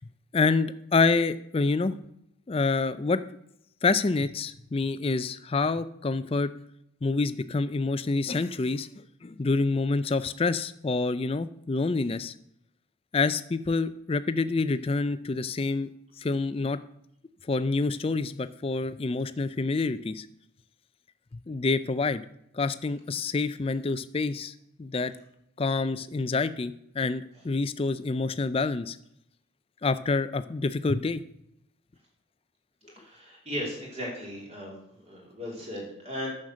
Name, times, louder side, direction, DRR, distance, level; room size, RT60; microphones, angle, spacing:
voice 1, 0.3-2.0 2.5-3.2 3.8-6.5 7.0-8.9 9.2-12.3 13.1-15.9 16.2-16.8 17.5-20.3 21.5-22.2 22.5-24.5 24.8-25.1 25.6-29.0 29.8-31.2, left 3 dB, 30° left, 13 dB, 0.4 m, -27 dB
voice 2, 33.0-34.8 35.1-36.3, equal, 30° right, -3 dB, 3.2 m, -36 dB
9.3 x 6.5 x 6.4 m, 0.78 s
head